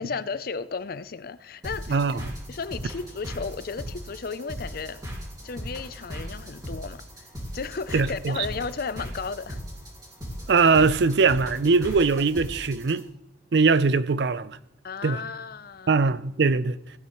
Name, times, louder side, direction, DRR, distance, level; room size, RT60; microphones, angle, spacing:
voice 1, 0.0-2.2 2.5-5.0 5.4-7.3 7.5-9.6 14.8-16.0, left 5 dB, 55° left, 0.5 m, -34 dB
sound 1, 1.6-13.0, equal, 20° right, 3.2 m, -38 dB
voice 2, 1.9-2.3 7.9-8.4 10.5-13.0 13.5-14.6 15.0-15.2 15.9-16.8, right 4 dB, 65° right, 0.5 m, -21 dB
16.5 x 9.2 x 3.1 m
head